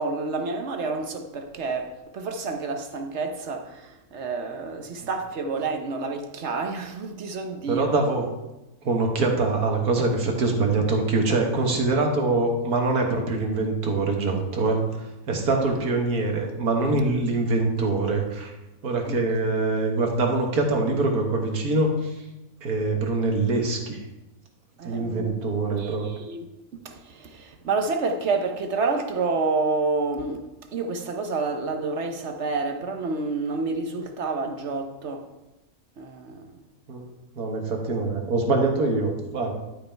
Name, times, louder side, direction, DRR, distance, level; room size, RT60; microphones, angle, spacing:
voice 1, 0.0-7.9 15.7-15.8 19.1-19.2 24.8-25.4 25.8-26.5 26.8-35.3 36.0-36.6, right 4 dB, 55° right, 1.0 m, -29 dB
voice 2, 7.7-8.3 8.8-18.5 18.8-22.2 22.6-24.0 24.8-26.1 36.9-39.5, right 3 dB, 80° right, 1.9 m, -24 dB
11.5 x 5.5 x 4.5 m
omnidirectional pair, 1.6 m